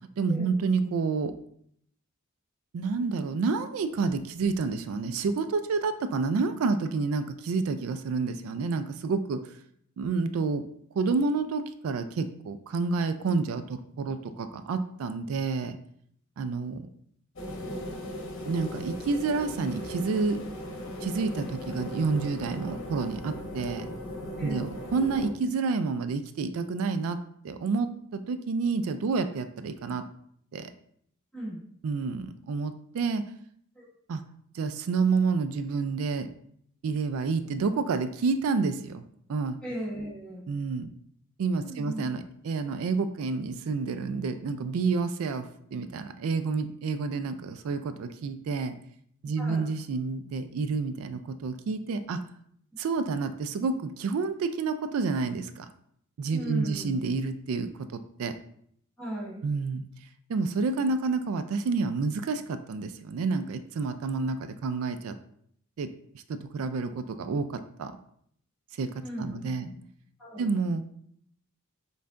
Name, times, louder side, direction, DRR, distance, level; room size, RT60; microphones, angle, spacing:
voice 1, 0.2-1.3 2.7-9.5 10.0-10.6 11.0-15.8 16.4-16.9 18.4-20.4 21.0-23.9 24.4-27.2 27.4-30.0 30.5-30.7 31.8-33.2 34.1-34.2 34.5-36.3 36.8-39.0 39.3-39.6 40.5-40.9 41.4-45.4 45.7-48.7 49.2-52.2 52.8-55.7 56.2-57.7 58.2-58.3 59.4-59.8 60.3-65.1 65.8-65.9 66.1-67.9 68.8-68.9 69.2-69.7 70.4-70.8, right 4 dB, 80° right, 10 dB, 0.3 m, -29 dB
sound 1, 17.4-25.3, equal, 65° left, 0.9 m, -38 dB
voice 2, 24.4-24.7 31.3-31.6 33.8-33.9 39.6-40.5 41.6-42.0 49.4-49.7 56.3-57.0 59.0-59.4 69.0-69.8 70.2-70.5, right 1 dB, 5° left, -7 dB, 1.6 m, -37 dB
5.5 x 3.9 x 2.5 m, 0.67 s
head